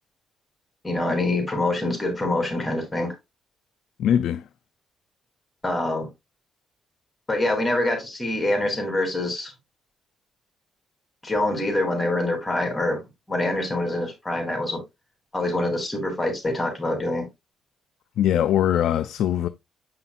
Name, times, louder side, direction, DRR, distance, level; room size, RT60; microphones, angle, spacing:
voice 1, 0.8-3.1 5.6-6.1 7.3-9.5 11.2-13.0 13.3-14.8 15.3-17.2, left 2 dB, 20° left, 3.4 m, -25 dB
voice 2, 4.0-4.4 18.2-19.5, left 10 dB, 80° left, 0.5 m, -21 dB
7.8 x 5.7 x 2.5 m
cardioid pair, 90°, 0 cm